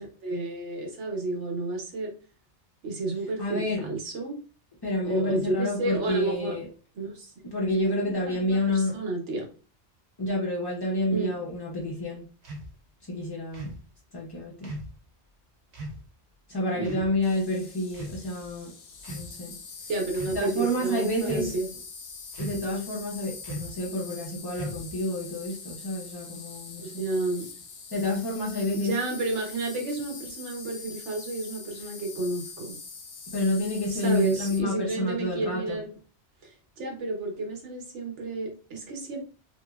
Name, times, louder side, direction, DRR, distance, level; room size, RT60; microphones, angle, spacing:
voice 1, 0.0-2.1 2.8-4.4 5.0-6.6 7.0-7.3 8.0-9.4 11.1-11.3 16.7-17.1 19.9-21.7 26.8-27.5 28.7-32.8 33.9-35.9 36.4-39.2, right 2 dB, 80° right, 1 dB, 1.2 m, -31 dB
voice 2, 3.4-3.8 4.8-6.7 7.4-9.0 10.2-12.3 13.0-13.8 14.1-14.7 16.5-18.7 19.1-19.6 20.3-21.5 22.4-27.1 27.9-29.0 33.3-35.8, left 1 dB, 35° left, -3 dB, 0.4 m, -29 dB
sound 1, 12.4-12.7 13.5-13.8 14.6-15.0 15.7-16.0 16.8-17.1 17.9-18.5 19.0-19.3 20.0-20.4 21.2-21.7 22.3-22.7 23.4-23.8 24.5-25.0, right 1 dB, 45° right, 0.6 m, -38 dB
Insect, 17.2-34.6, left 5 dB, 60° left, 0.8 m, -43 dB
2.9 x 2.6 x 2.3 m, 0.36 s
omnidirectional pair, 1.2 m